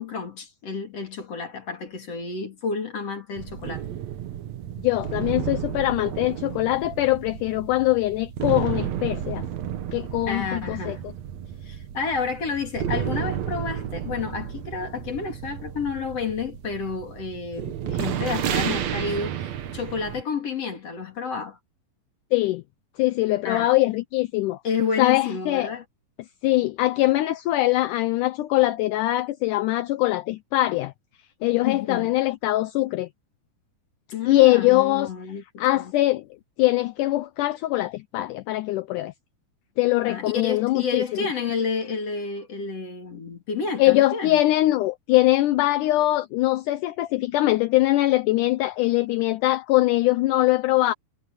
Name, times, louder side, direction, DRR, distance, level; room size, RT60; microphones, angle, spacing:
voice 1, 0.0-3.9 10.3-11.0 11.6-21.6 23.4-23.7 24.6-25.8 31.6-32.1 34.1-35.4 35.7-35.9 40.1-44.4, left 5 dB, 45° left, 3.5 m, -30 dB
sound 1, 3.4-20.2, right 10 dB, 60° right, 2.2 m, -32 dB
voice 2, 4.8-9.5 9.9-11.1 22.3-22.6 23.0-24.6 25.0-25.7 26.4-30.9 31.4-33.1 34.3-35.1 35.6-36.3 36.6-39.1 39.8-41.3 43.8-50.9, left 17 dB, 80° left, 2.0 m, -22 dB
omnidirectional pair, 4.0 m